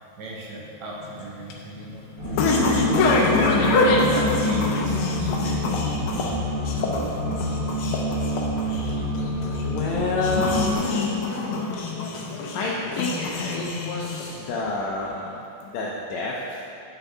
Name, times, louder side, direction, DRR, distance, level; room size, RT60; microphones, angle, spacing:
voice 1, 0.2-2.0 3.6-5.9, right 2 dB, 70° right, -3 dB, 2.4 m, -37 dB
sound 1, 1.0-14.6, left 3 dB, 90° left, 1.2 m, -25 dB
sound 2, 2.2-10.7, equal, 45° right, 1.2 m, -28 dB
voice 2, 9.6-11.1 12.5-16.6, left 2 dB, 75° left, -4 dB, 1.8 m, -29 dB
8.2 x 8.0 x 3.5 m, 2.6 s
omnidirectional pair, 3.5 m